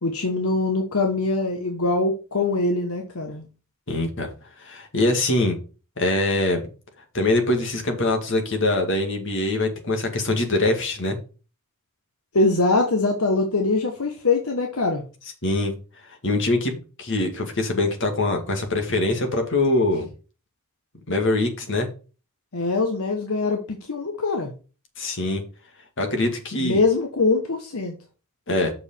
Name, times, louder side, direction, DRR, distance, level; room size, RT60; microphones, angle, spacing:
voice 1, 0.0-3.5 12.3-15.0 22.5-24.5 26.6-28.0, left 3 dB, 80° left, 1.2 m, -23 dB
voice 2, 3.9-4.3 4.6-5.6 6.0-6.6 7.1-11.2 15.4-15.7 16.1-20.1 21.1-21.9 25.0-25.4 26.0-26.8 28.5-28.7, left 2 dB, 60° left, 2.3 m, -23 dB
6.6 x 5.3 x 6.8 m
head